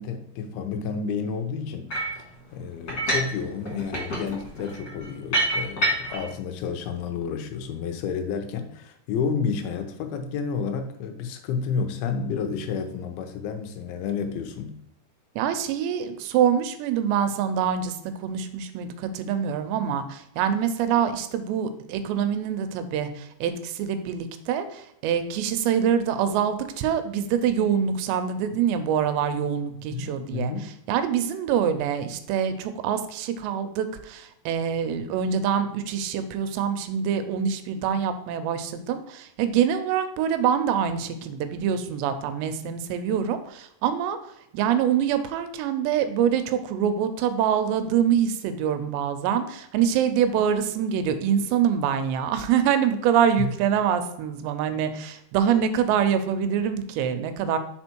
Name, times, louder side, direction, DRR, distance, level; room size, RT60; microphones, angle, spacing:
voice 1, 0.0-1.9 2.5-14.8 29.9-30.7 53.4-53.5, left 6 dB, 80° left, 6 dB, 2.3 m, -30 dB
sound 1, 1.9-2.2 2.9-3.4 3.7-6.3, right 1 dB, 35° left, 1.8 m, -27 dB
voice 2, 15.4-30.5 30.9-44.2 44.5-57.6, right 8 dB, 85° right, 9 dB, 2.8 m, -25 dB
5.7 x 4.3 x 4.4 m, 0.79 s
omnidirectional pair, 5.0 m